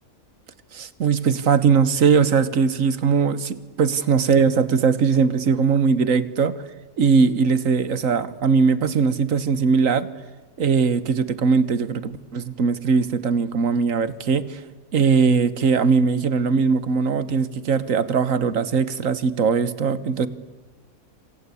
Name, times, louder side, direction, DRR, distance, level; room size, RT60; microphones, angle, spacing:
voice 1, 0.7-6.6 7.0-10.1 10.6-14.6 14.9-20.3, right 5 dB, 65° right, 15 dB, 1.6 m, -20 dB
26.5 x 26.0 x 8.5 m, 1.2 s
omnidirectional pair, 1.5 m